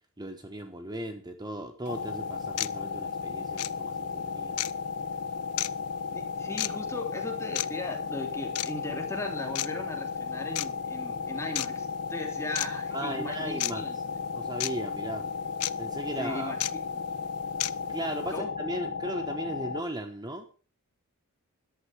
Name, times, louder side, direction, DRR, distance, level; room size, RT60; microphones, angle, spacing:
voice 1, 0.2-4.6 12.9-14.0 14.3-15.2 15.8-16.5 17.9-20.5, right 1 dB, 20° right, 7 dB, 1.1 m, -37 dB
sound 1, 1.9-2.0 2.6-2.7 3.5-3.7 4.6-4.7 5.6-5.7 6.6-6.7 7.5-7.7 8.5-8.7 9.5-9.7 10.5-10.7 11.5-11.7 12.5-12.7 13.6-13.7 14.6-14.7 15.6-15.7 16.6-16.7 17.6-17.7, left 16 dB, 85° left, 0.6 m, -30 dB
sound 2, 1.9-19.8, left 5 dB, 55° left, 1.0 m, -35 dB
voice 2, 6.1-14.2 16.2-16.8 18.3-18.5, left 2 dB, 15° left, 2 dB, 3.2 m, -38 dB
13.5 x 11.5 x 4.9 m, 0.39 s
head